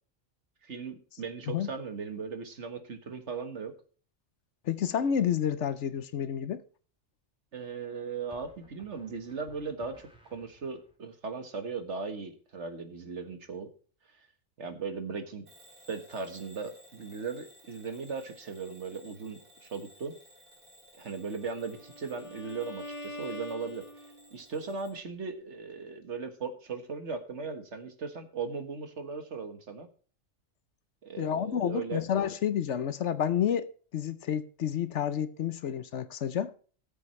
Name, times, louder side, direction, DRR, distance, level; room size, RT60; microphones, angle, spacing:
voice 1, 0.6-3.7 7.5-13.7 14.6-15.5 15.9-20.1 21.0-23.8 24.3-29.9 31.0-32.0, right 5 dB, 60° right, 1.8 m, -38 dB
voice 2, 4.6-6.6 31.2-33.7 33.9-36.5, left 9 dB, 65° left, 1.0 m, -29 dB
sound 1, 5.8-6.2 8.3-11.0, right 2 dB, 5° right, 2.9 m, -58 dB
Bell / Alarm, 15.5-25.0, right 1 dB, 45° right, 2.6 m, -57 dB
Bowed string instrument, 21.3-24.4, left 1 dB, 25° left, 1.2 m, -44 dB
18.0 x 7.9 x 3.2 m
omnidirectional pair, 1.3 m